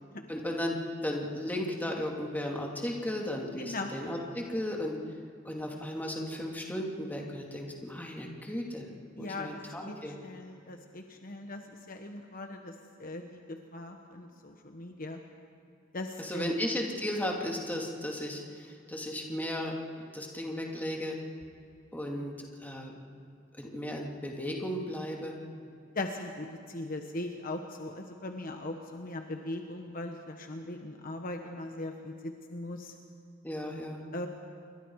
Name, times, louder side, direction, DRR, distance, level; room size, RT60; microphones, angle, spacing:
voice 1, 0.3-5.0 5.4-8.9 9.2-10.2 16.2-19.8 20.1-21.2 21.9-22.9 23.6-25.4 33.4-34.0, left 1 dB, 10° left, -1 dB, 2.6 m, -35 dB
voice 2, 3.6-3.9 9.2-9.6 9.8-15.2 15.9-16.5 25.9-32.9 34.1-34.3, left 2 dB, 45° left, 4 dB, 1.2 m, -39 dB
28.0 x 23.5 x 4.8 m, 2.6 s
head